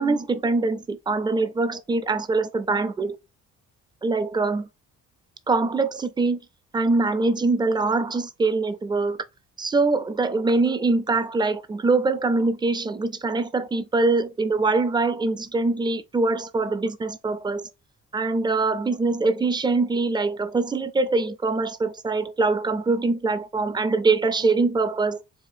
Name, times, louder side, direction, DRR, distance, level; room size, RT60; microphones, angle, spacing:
voice 1, 0.0-3.2 4.0-4.7 5.5-6.4 6.7-9.3 9.6-17.7 18.1-25.2, right 3 dB, 15° right, 0.4 m, -23 dB
4.9 x 2.5 x 2.6 m
cardioid pair, 90°, 30 cm